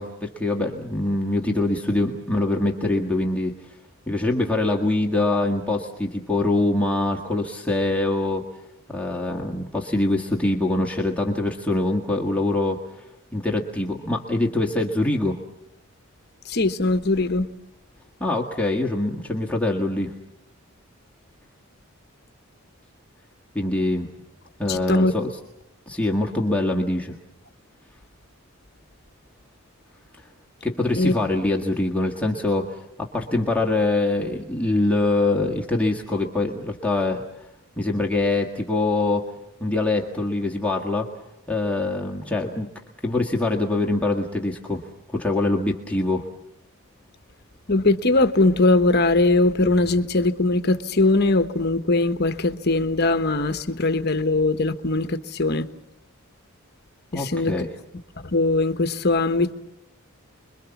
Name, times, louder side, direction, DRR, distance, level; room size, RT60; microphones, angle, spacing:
voice 1, 0.0-3.7 4.1-8.4 8.9-15.4 18.2-20.1 23.5-24.1 24.6-25.3 25.9-27.2 30.6-37.5 37.8-39.3 39.6-41.1 41.5-42.7 43.0-44.8 45.1-46.3 57.1-57.7, left 2 dB, 5° left, 1.7 m, -24 dB
voice 2, 16.4-17.5 24.6-25.1 31.0-31.1 47.7-55.7 57.1-57.5 58.2-59.5, left 2 dB, 45° left, 1.2 m, -21 dB
30.0 x 22.5 x 7.1 m
head